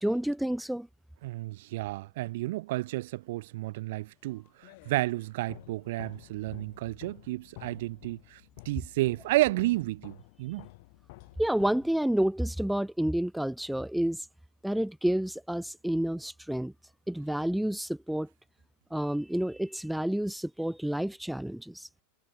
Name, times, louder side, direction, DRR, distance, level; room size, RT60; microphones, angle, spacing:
voice 1, 0.0-0.9 11.4-14.3 14.6-16.7 17.1-18.3 18.9-21.9, right 1 dB, ahead, 0.7 m, -29 dB
voice 2, 1.2-10.7, right 18 dB, 65° right, 1.0 m, -31 dB
sound 1, 4.2-12.3, left 25 dB, 60° left, 2.2 m, -52 dB
hypercardioid pair, 110°, 0 cm